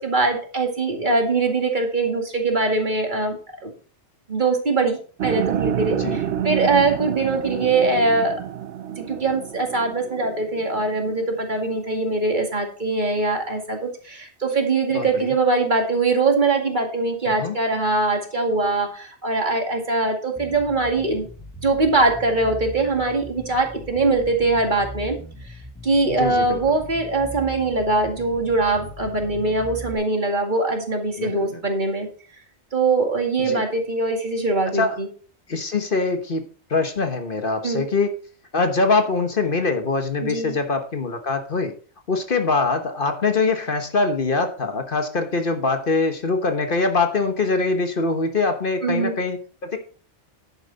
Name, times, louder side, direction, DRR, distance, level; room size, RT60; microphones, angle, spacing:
voice 1, 0.0-3.4 3.6-3.7 4.3-8.4 9.0-21.3 21.6-25.2 25.8-32.1 32.7-35.1 37.6-37.8 40.2-40.6 48.8-49.1, right 3 dB, 45° right, 2 dB, 2.3 m, -22 dB
sound 1, 5.2-11.3, right 10 dB, 90° right, 0.9 m, -29 dB
voice 2, 14.9-15.4 17.3-17.6 26.1-26.6 31.2-31.4 33.5-33.6 34.7-35.0 35.5-36.4 36.7-38.1 38.5-41.8 42.1-49.8, left 3 dB, 50° left, 6 dB, 1.3 m, -23 dB
Bass guitar, 20.3-29.9, left 1 dB, 15° left, 1.9 m, -39 dB
10.5 x 9.0 x 4.1 m, 0.41 s
omnidirectional pair, 1.2 m